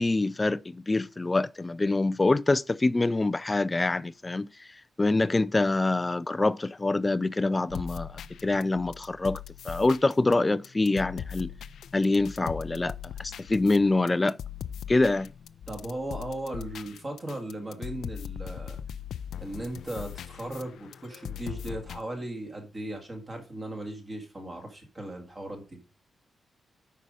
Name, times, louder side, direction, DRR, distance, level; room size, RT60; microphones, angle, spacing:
voice 1, 0.0-4.7 5.0-11.5 11.9-14.4 14.9-15.3, left 2 dB, 15° left, 0.3 m, -25 dB
sound 1, 7.7-22.0, left 9 dB, 90° left, 0.5 m, -40 dB
voice 2, 15.7-18.8 19.4-25.8, right 1 dB, 25° right, 2.1 m, -37 dB
9.2 x 5.6 x 5.0 m
wide cardioid pair, 175°, 0 cm